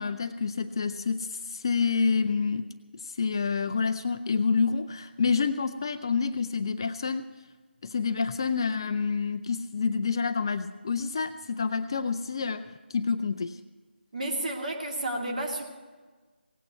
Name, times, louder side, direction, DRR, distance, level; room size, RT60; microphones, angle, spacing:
voice 1, 0.0-2.7 2.9-7.3 7.8-13.6, left 5 dB, 25° left, 10 dB, 0.4 m, -28 dB
voice 2, 14.1-15.6, right 1 dB, 45° right, 1 dB, 2.6 m, -31 dB
17.5 x 8.7 x 8.1 m, 1.4 s
figure-of-eight pair, 160°, 6 cm